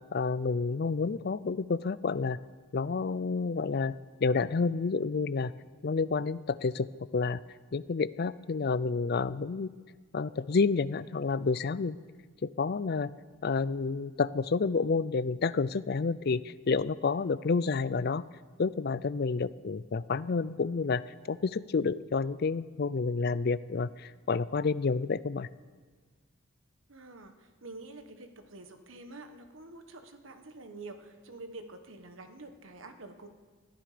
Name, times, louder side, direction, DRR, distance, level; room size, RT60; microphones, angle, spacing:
voice 1, 0.1-2.4 2.7-5.5 5.8-7.4 7.7-9.7 10.1-12.0 12.4-13.1 13.4-18.2 18.6-21.0 21.3-25.5, left 4 dB, 50° left, 17 dB, 0.4 m, -29 dB
voice 2, 26.9-33.3, right 2 dB, 65° right, 7 dB, 1.3 m, -47 dB
20.5 x 13.5 x 5.1 m, 1.4 s
head